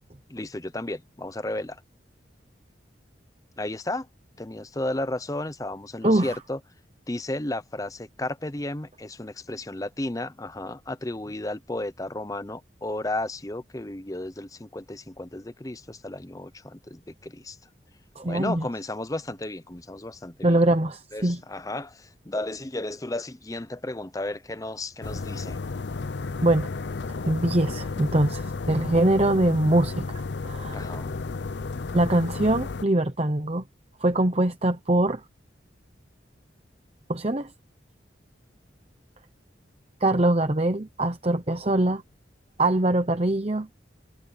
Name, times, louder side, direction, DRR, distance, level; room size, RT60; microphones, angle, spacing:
voice 1, 0.3-1.8 3.6-4.1 4.4-6.6 7.1-17.6 18.2-20.6 21.1-25.6 30.7-31.1, left 1 dB, 20° left, 0.7 m, -33 dB
voice 2, 6.0-6.4 18.2-18.7 20.4-21.4 26.4-26.7 27.2-30.8 31.9-33.6 34.0-35.2 37.1-37.5 40.0-42.0 42.6-43.7, right 1 dB, 35° right, 1.0 m, -23 dB
sound 1, 25.0-32.9, left 3 dB, 70° left, 0.6 m, -33 dB
head